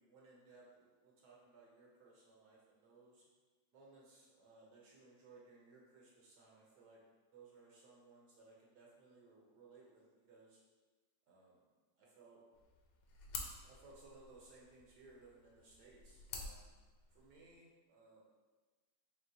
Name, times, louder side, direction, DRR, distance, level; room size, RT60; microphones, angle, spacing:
voice 1, 0.0-3.2 3.7-7.0 7.3-10.6 11.3-11.6 12.0-12.4 13.6-16.6 17.1-18.2, right 3 dB, 70° right, -3 dB, 1.2 m, -62 dB
sound 1, 12.5-17.5, left 4 dB, 80° left, 1.2 m, -51 dB
4.5 x 3.3 x 2.6 m, 1.3 s
omnidirectional pair, 2.0 m